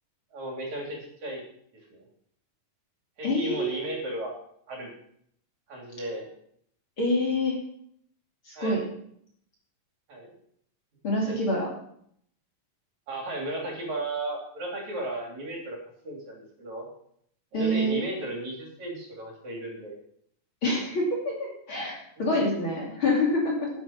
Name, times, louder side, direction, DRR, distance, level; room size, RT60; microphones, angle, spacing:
voice 1, 0.3-1.4 1.7-2.0 3.2-4.3 4.7-4.9 5.7-6.3 8.6-8.8 10.1-10.3 11.2-11.4 13.1-15.8 16.0-16.9 17.5-20.0 22.3-22.6, right 1 dB, 55° right, 0 dB, 4.1 m, -35 dB
voice 2, 3.2-3.9 7.0-7.6 8.5-8.8 11.0-11.7 17.5-18.0 20.6-23.7, left 1 dB, 40° left, -3 dB, 3.3 m, -26 dB
11.5 x 10.0 x 5.8 m, 0.68 s
omnidirectional pair, 4.0 m